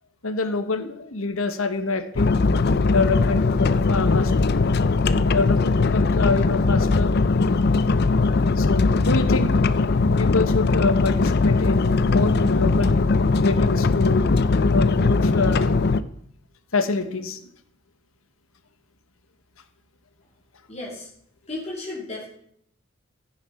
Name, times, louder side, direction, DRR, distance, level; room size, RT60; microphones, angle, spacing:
voice 1, 0.2-2.4 2.9-4.5 5.3-7.1 8.6-9.6 10.2-12.9 13.4-14.3 14.6-15.7 16.7-17.4, left 3 dB, 85° left, 9 dB, 1.3 m, -26 dB
sound 1, 2.2-16.0, left 3 dB, 50° left, 0.5 m, -20 dB
voice 2, 20.7-21.1 21.5-22.3, left 2 dB, 30° left, -4 dB, 2.9 m, -34 dB
15.5 x 7.1 x 5.7 m, 0.68 s
head